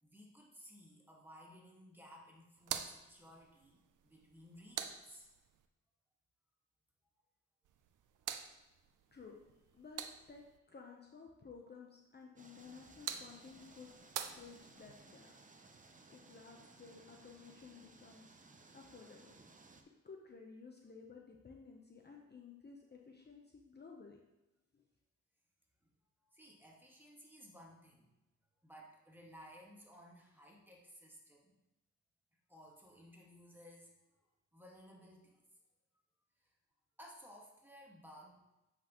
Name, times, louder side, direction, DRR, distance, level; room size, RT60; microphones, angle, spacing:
voice 1, 0.0-5.3 25.8-25.9 26.2-28.1 28.6-31.6 32.5-34.2 34.5-35.5 36.4-36.5 37.0-38.4, equal, 5° right, -3 dB, 1.8 m, -58 dB
sound 1, 2.6-5.7 7.6-10.6 12.6-15.0, right 9 dB, 85° right, 0.6 m, -47 dB
voice 2, 9.1-9.4 9.7-13.9 14.3-15.3 16.1-18.4 18.7-19.3 20.0-24.2 24.7-24.8, left 5 dB, 35° left, 1 dB, 0.9 m, -55 dB
sound 2, 12.4-19.8, right 3 dB, 25° right, 0.7 m, -61 dB
8.1 x 6.0 x 3.1 m, 0.99 s
cardioid pair, 85°, 30 cm